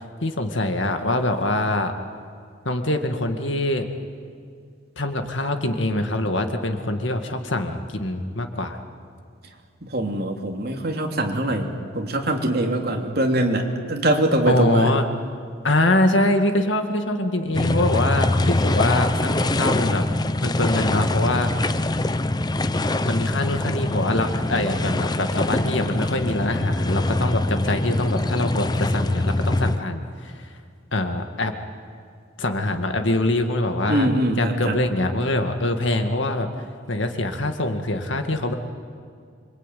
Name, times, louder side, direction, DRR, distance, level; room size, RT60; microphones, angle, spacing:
voice 1, 0.2-1.9 2.7-3.9 5.0-8.8 14.5-15.1 15.6-20.1 20.4-21.7 23.0-30.4 30.9-31.5 32.4-34.1 34.4-36.5 36.9-38.5, left 1 dB, 70° left, 6 dB, 2.1 m, -24 dB
voice 2, 9.8-14.9 33.9-34.8, right 1 dB, 50° right, 2 dB, 3.1 m, -23 dB
sound 1, 17.5-29.8, left 2 dB, 20° left, 0.7 m, -23 dB
26.5 x 24.0 x 9.4 m, 2.2 s
head